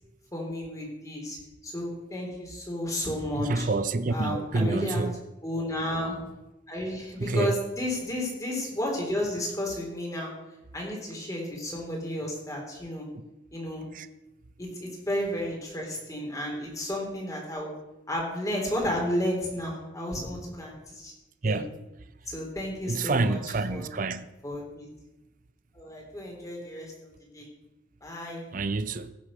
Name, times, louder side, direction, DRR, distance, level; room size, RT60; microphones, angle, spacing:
voice 1, 0.3-1.4 1.6-3.7 4.1-5.0 5.4-6.1 6.7-10.3 10.7-13.1 13.5-13.9 14.6-17.7 18.1-21.1 21.4-21.6 22.3-23.4 23.7-23.9 24.4-24.9 25.7-26.9 27.3-27.5 28.0-28.5, left 1 dB, 20° left, 3.6 m, -32 dB
voice 2, 3.3-5.2 7.2-7.6 13.9-14.1 21.4-21.7 22.9-24.3 28.5-29.1, right 3 dB, 45° right, 0.6 m, -28 dB
16.0 x 7.0 x 6.5 m
head